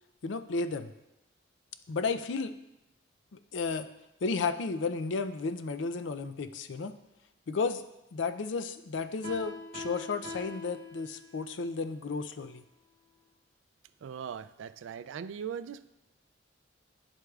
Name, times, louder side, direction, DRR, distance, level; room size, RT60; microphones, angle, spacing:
voice 1, 0.2-0.9 1.9-2.5 3.3-3.9 4.2-6.9 7.5-7.8 8.1-12.6, left 4 dB, 75° left, 10 dB, 0.4 m, -33 dB
Piano, 9.2-11.5, left 3 dB, 45° right, 1.9 m, -43 dB
voice 2, 14.0-15.9, right 7 dB, 80° right, 15 dB, 0.3 m, -39 dB
10.0 x 7.9 x 2.4 m, 0.92 s
head